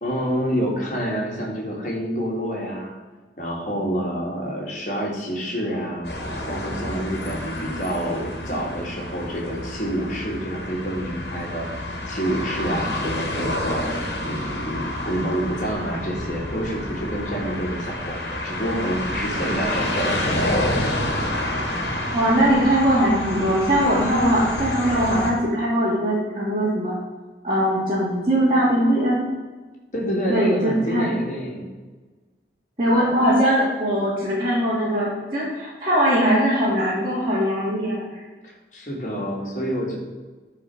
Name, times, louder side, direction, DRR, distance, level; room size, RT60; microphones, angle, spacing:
voice 1, 0.0-3.0 3.4-6.1 6.5-11.7 12.1-13.9 14.2-20.5 29.9-31.7 38.4-40.0, equal, 45° left, -2 dB, 2.7 m, -27 dB
sound 1, 6.0-25.3, left 1 dB, 65° left, 2.2 m, -28 dB
voice 2, 22.1-26.9 27.4-29.3 30.3-31.1 32.8-38.1, equal, 30° right, -11 dB, 3.0 m, -21 dB
11.0 x 5.1 x 6.3 m, 1.3 s
head